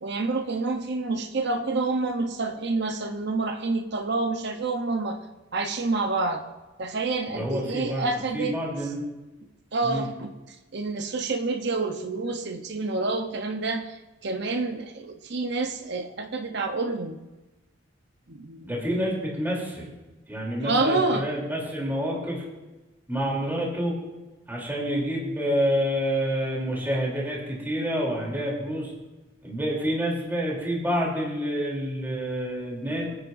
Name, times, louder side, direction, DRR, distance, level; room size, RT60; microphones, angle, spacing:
voice 1, 0.0-5.2 5.5-6.4 6.8-8.6 9.7-10.3 10.7-14.0 14.2-17.2 18.3-18.6 20.6-21.3, right 3 dB, 60° right, 5 dB, 0.9 m, -28 dB
voice 2, 7.3-8.1 8.3-9.0 9.8-10.1 18.6-19.9 20.3-22.4 23.1-23.9 24.5-28.9 29.4-33.1, equal, 10° right, -4 dB, 3.3 m, -28 dB
23.5 x 9.8 x 2.6 m, 1.1 s
head